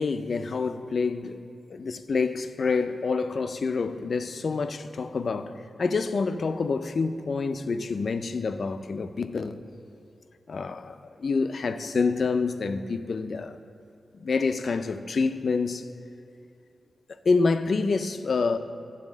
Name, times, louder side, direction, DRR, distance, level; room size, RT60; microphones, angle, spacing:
voice 1, 0.0-1.4 1.7-5.5 5.8-9.6 10.5-13.6 14.1-15.9 17.3-18.6, left 4 dB, 55° left, 0.4 m, -27 dB
9.8 x 4.1 x 7.1 m
wide cardioid pair, 145°, 0 cm